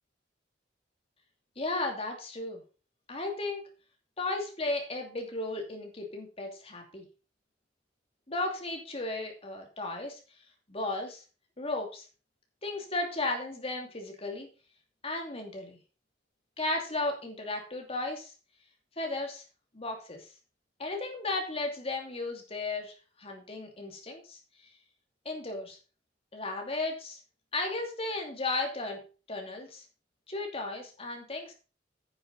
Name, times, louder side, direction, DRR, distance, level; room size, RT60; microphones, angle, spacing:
voice 1, 1.6-2.6 3.1-3.7 4.2-7.0 8.3-10.2 10.7-11.2 11.6-12.0 12.6-14.5 15.0-15.8 16.6-18.3 19.0-19.4 19.7-20.3 20.8-24.4 25.2-25.8 26.3-27.2 27.5-29.0 29.3-29.8 30.3-31.5, left 2 dB, 35° left, 2 dB, 2.7 m, -35 dB
9.8 x 7.1 x 5.2 m, 0.35 s
head